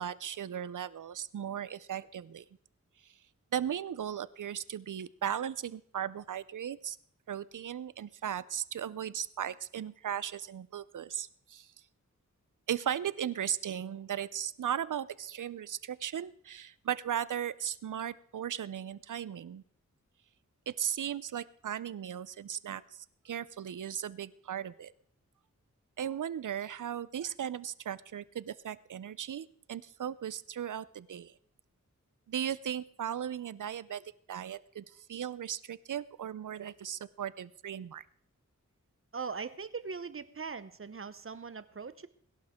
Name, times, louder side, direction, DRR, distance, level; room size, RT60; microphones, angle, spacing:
voice 1, 0.0-2.4 3.5-7.0 7.3-11.7 12.7-19.6 20.7-24.9 26.0-31.3 32.3-38.0, right 9 dB, 80° right, 18 dB, 0.6 m, -37 dB
voice 2, 39.1-42.1, right 5 dB, 45° right, 14 dB, 0.8 m, -40 dB
21.5 x 11.5 x 3.6 m, 0.64 s
wide cardioid pair, 60°, 31 cm